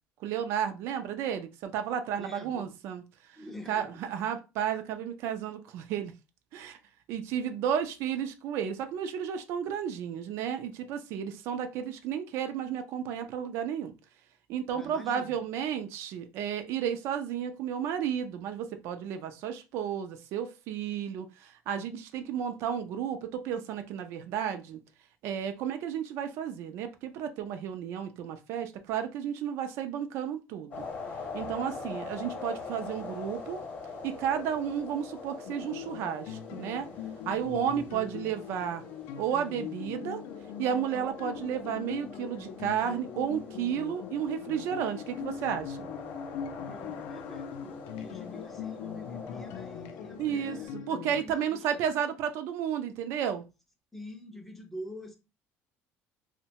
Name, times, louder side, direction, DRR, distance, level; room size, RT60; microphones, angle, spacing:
voice 1, 0.2-3.0 3.7-6.1 6.5-6.8 7.1-13.9 14.5-24.8 25.2-30.9 31.3-33.6 34.0-36.9 37.3-38.8 39.2-40.2 40.6-45.9 50.2-50.6 50.9-53.4, right 8 dB, 60° right, 0.3 m, -32 dB
voice 2, 2.2-2.8 3.3-4.0 14.7-15.4 46.5-50.8 51.1-51.9 53.9-55.2, equal, 5° left, 0.4 m, -46 dB
sound 1, 30.7-50.7, left 3 dB, 35° left, 0.9 m, -44 dB
sound 2, 35.4-51.2, left 8 dB, 80° left, 0.3 m, -41 dB
2.6 x 2.1 x 2.8 m
cardioid pair, 165°, 5 cm